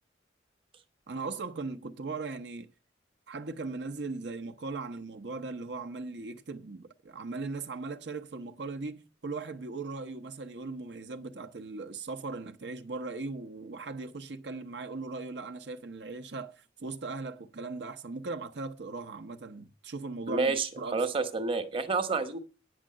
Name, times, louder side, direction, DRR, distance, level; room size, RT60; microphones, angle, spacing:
voice 1, 1.1-2.7 3.3-21.0, right 3 dB, 70° right, 0.8 m, -39 dB
voice 2, 20.3-22.4, right 4 dB, 30° right, 1.0 m, -29 dB
9.6 x 6.2 x 7.5 m
head